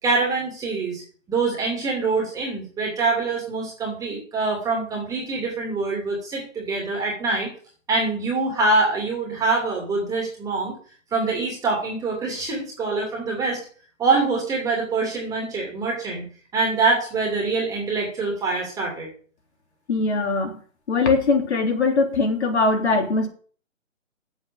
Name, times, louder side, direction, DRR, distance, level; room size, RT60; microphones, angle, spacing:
voice 1, 0.0-1.0 1.3-7.5 7.9-10.7 11.1-13.6 14.0-16.3 16.5-19.1, right 3 dB, 10° right, -2 dB, 2.7 m, -24 dB
voice 2, 19.9-20.6 20.9-23.3, left 3 dB, 55° left, 4 dB, 3.4 m, -21 dB
8.4 x 7.8 x 7.7 m, 0.43 s
figure-of-eight pair, 145°, 40 cm